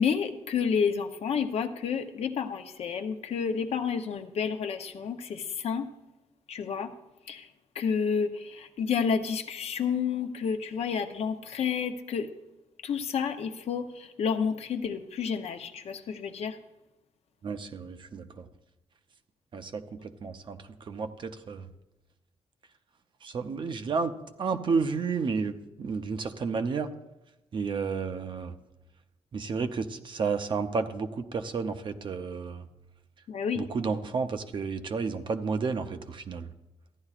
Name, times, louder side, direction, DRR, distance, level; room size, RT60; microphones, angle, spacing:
voice 1, 0.0-5.9 6.5-6.9 7.3-7.5 7.7-12.3 12.8-16.6 33.3-33.6, left 6 dB, 65° left, 7 dB, 0.7 m, -30 dB
voice 2, 17.4-18.5 19.5-21.7 23.2-26.9 27.5-28.5 29.3-32.7 33.6-36.5, right 5 dB, 45° right, 9 dB, 0.6 m, -31 dB
14.5 x 10.5 x 2.4 m, 1.0 s
wide cardioid pair, 145°, 11 cm